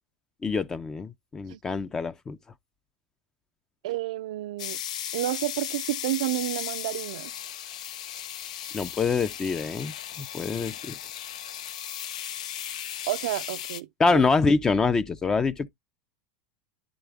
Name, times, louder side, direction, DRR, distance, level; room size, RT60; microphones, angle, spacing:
voice 1, 0.4-2.4 8.7-10.9 14.0-15.7, left 4 dB, 15° left, 0.5 m, -25 dB
voice 2, 3.8-4.8 5.1-7.3 13.1-14.2, right 15 dB, 75° right, 0.5 m, -30 dB
sound 1, 4.6-13.8, left 10 dB, 90° left, 0.8 m, -36 dB
10.5 x 3.7 x 3.4 m
supercardioid pair, 145°, 4 cm